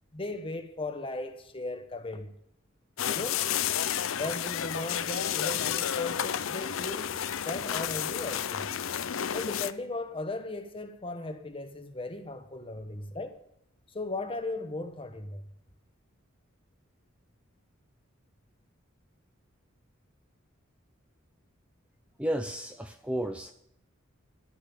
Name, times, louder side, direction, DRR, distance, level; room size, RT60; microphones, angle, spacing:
voice 1, 0.1-2.3 3.0-3.4 4.1-7.1 7.4-8.7 9.3-13.4 13.9-15.5, left 2 dB, 25° left, 1.1 m, -37 dB
sound 1, 3.0-9.7, left 9 dB, 70° left, 0.5 m, -31 dB
voice 2, 22.2-23.5, right 1 dB, 5° right, 0.5 m, -32 dB
11.0 x 6.9 x 9.2 m
head